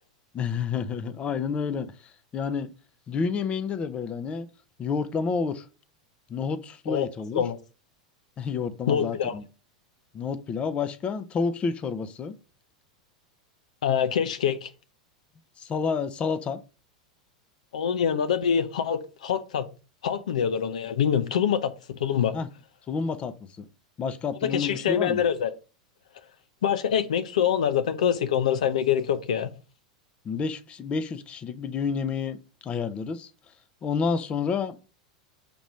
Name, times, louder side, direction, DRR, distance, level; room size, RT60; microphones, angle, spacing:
voice 1, 0.3-2.7 3.1-4.5 4.8-5.7 6.3-7.4 8.4-9.4 10.1-12.3 15.6-16.6 22.3-22.5 22.9-23.7 24.0-25.2 30.2-33.3 33.8-34.8, left 5 dB, 30° left, 0.7 m, -29 dB
voice 2, 8.9-9.4 13.8-14.7 17.7-19.7 20.0-21.7 22.0-22.3 24.4-25.5 26.6-29.5, left 8 dB, 75° left, 0.7 m, -25 dB
6.9 x 3.0 x 5.1 m
hypercardioid pair, 100°, 4 cm